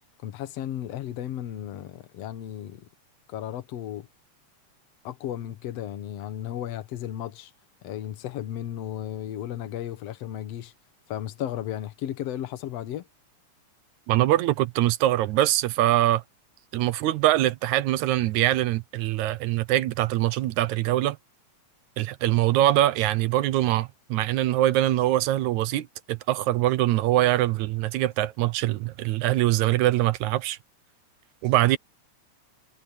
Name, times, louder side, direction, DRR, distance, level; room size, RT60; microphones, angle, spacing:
voice 1, 0.2-2.9 3.3-4.1 5.0-7.5 7.8-10.7 11.1-13.1, left 11 dB, 65° left, 2.3 m, -34 dB
voice 2, 14.1-16.2 16.7-21.2 22.0-30.6 31.4-31.8, right 14 dB, 80° right, 2.2 m, -23 dB
omnidirectional pair, 3.3 m